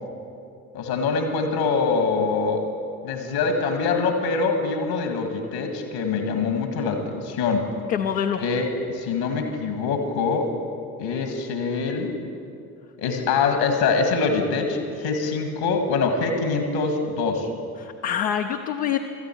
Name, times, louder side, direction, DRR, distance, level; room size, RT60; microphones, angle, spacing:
voice 1, 0.7-2.6 3.0-7.7 8.4-10.5 11.0-12.2 13.0-17.5, left 4 dB, 75° left, 5 dB, 1.9 m, -24 dB
voice 2, 7.9-8.5 17.8-19.0, left 9 dB, 90° left, 3 dB, 0.6 m, -25 dB
17.5 x 13.0 x 4.5 m, 2.5 s
hypercardioid pair, 50°, 46 cm